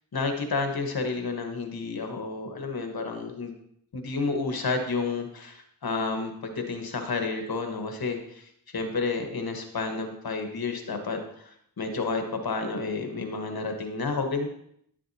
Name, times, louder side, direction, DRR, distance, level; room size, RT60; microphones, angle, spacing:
voice 1, 0.1-3.5 3.9-14.5, left 4 dB, 75° left, 4 dB, 1.3 m, -30 dB
11.0 x 7.5 x 2.8 m, 0.70 s
cardioid pair, 40°, 37 cm